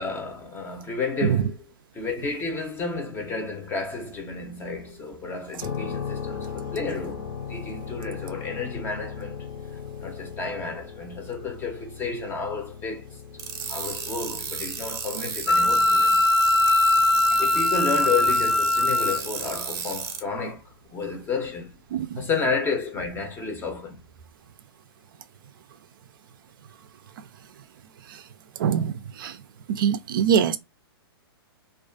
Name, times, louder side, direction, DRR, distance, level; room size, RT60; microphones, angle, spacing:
voice 1, 0.0-1.6 1.9-9.4 10.0-13.0 13.7-16.4 17.4-20.6 20.9-21.8 22.2-24.0, left 4 dB, 15° left, 0.6 m, -31 dB
sound 1, 5.6-20.3, left 7 dB, 60° left, 0.9 m, -39 dB
sound 2, 13.4-20.2, right 6 dB, 20° right, 0.6 m, -34 dB
Wind instrument woodwind instrument, 15.5-19.2, left 2 dB, 75° left, 0.4 m, -20 dB
voice 2, 21.9-22.3 28.1-28.2 28.6-29.4 29.7-30.6, right 8 dB, 55° right, 0.4 m, -24 dB
2.4 x 2.4 x 2.3 m
hypercardioid pair, 135°, 13 cm